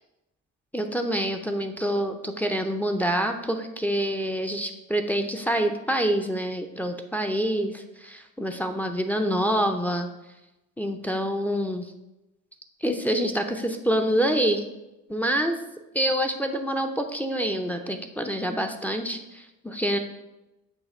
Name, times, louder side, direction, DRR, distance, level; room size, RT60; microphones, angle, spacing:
voice 1, 0.7-10.1 10.8-11.9 12.8-14.6 15.1-15.6 15.9-20.0, equal, 5° left, 5 dB, 0.5 m, -26 dB
7.3 x 2.9 x 5.3 m, 0.96 s
cardioid pair, 110°, 31 cm